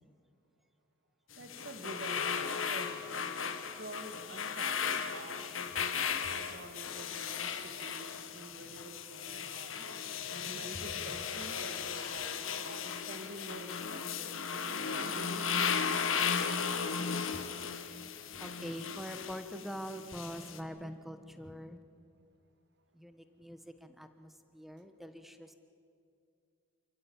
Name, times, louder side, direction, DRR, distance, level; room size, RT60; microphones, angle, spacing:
sound 1, 1.3-20.6, left 6 dB, 85° left, 1.5 m, -36 dB
voice 1, 1.4-3.3 3.8-9.9 10.4-16.2, right 1 dB, 55° right, 8 dB, 1.9 m, -48 dB
voice 2, 10.0-11.1 17.3-17.5 18.3-21.8 22.9-25.5, equal, ahead, 8 dB, 1.1 m, -45 dB
28.0 x 14.5 x 8.7 m, 2.4 s
head